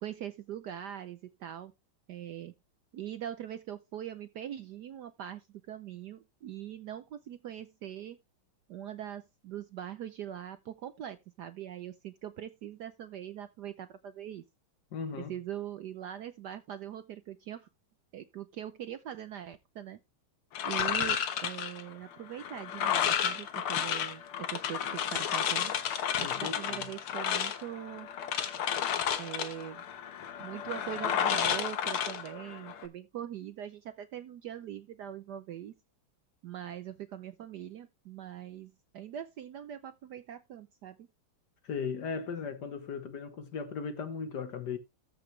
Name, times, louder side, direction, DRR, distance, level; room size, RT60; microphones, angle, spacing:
voice 1, 0.0-1.7 2.1-2.5 2.9-8.2 8.7-14.4 15.3-17.7 18.1-20.0 20.6-25.7 26.2-28.1 29.2-29.8 30.4-35.8 36.4-41.1, right 10 dB, 70° right, 1.0 m, -42 dB
voice 2, 14.9-15.3 26.2-26.9 41.6-44.8, left 5 dB, 55° left, 1.5 m, -37 dB
sound 1, 20.5-32.9, left 9 dB, 80° left, 2.0 m, -32 dB
14.0 x 5.9 x 3.2 m
omnidirectional pair, 2.4 m